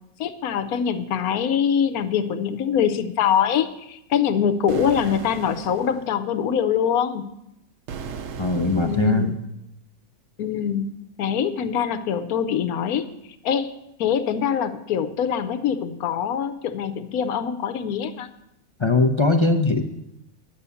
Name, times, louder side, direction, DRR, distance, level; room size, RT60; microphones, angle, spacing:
voice 1, 0.2-7.2 8.8-9.3 10.4-10.9 11.2-13.1 13.4-13.7 14.0-18.3, left 8 dB, 85° left, 10 dB, 1.2 m, -23 dB
sound 1, 4.7-6.1 7.9-9.3, right 6 dB, 60° right, 0.9 m, -36 dB
voice 2, 8.4-9.4 18.8-19.8, left 3 dB, 40° left, 6 dB, 0.4 m, -20 dB
10.0 x 6.9 x 8.3 m, 0.84 s
omnidirectional pair, 1.5 m